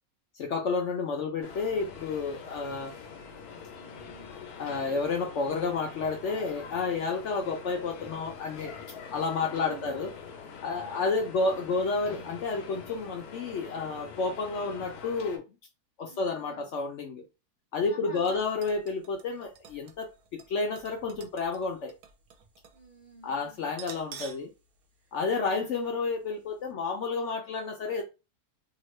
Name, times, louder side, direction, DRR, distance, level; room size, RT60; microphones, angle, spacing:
voice 1, 0.3-2.9 4.6-8.7 9.1-10.1 10.6-15.4 16.0-17.2 17.7-21.9 23.2-24.5 25.1-28.0, left 4 dB, 65° left, 0.8 m, -30 dB
sound 1, 1.4-15.4, left 6 dB, 85° left, 1.2 m, -45 dB
voice 2, 3.7-4.3 9.2-10.1 10.6-11.5 16.1-16.7 17.8-18.4 22.7-23.8 25.4-25.9, right 2 dB, 40° right, 0.6 m, -51 dB
sound 2, 18.2-22.8 23.1-23.2 23.7-24.5 24.9-25.0 25.7-25.9 26.3-26.4, right 7 dB, 75° right, 1.1 m, -50 dB
2.9 x 2.4 x 3.1 m
omnidirectional pair, 1.6 m